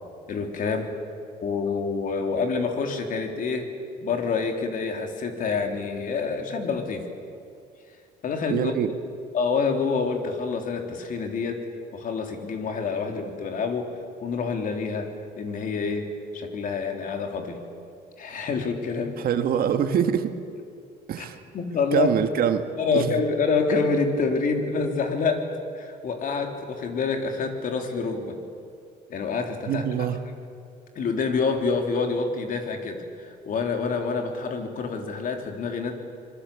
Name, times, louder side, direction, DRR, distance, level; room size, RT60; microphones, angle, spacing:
voice 1, 0.3-0.9 1.4-3.7 4.0-7.1 8.2-8.7 9.3-11.7 11.9-13.9 14.2-17.6 18.2-19.2 21.2-21.3 21.5-22.1 22.8-25.5 25.7-28.4 29.1-30.1 31.0-35.9, left 4 dB, 55° left, 4 dB, 3.6 m, -27 dB
voice 2, 8.5-8.9 19.2-20.3 21.1-21.4 21.9-22.7 22.9-23.1 29.7-30.2, right 9 dB, 65° right, 8 dB, 1.8 m, -24 dB
25.5 x 22.5 x 8.6 m, 2.4 s
cardioid pair, 110°, 17 cm